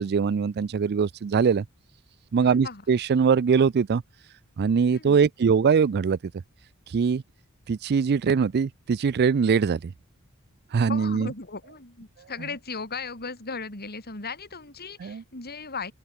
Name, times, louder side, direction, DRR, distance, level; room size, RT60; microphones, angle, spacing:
voice 1, 0.0-1.6 2.3-4.0 4.6-6.2 6.9-7.2 7.7-9.9 10.7-11.3 15.0-15.2, right 6 dB, 50° right, 0.4 m, -22 dB
voice 2, 2.4-2.8 4.9-5.2 10.9-15.9, left 4 dB, 45° left, 4.4 m, -37 dB
open air
head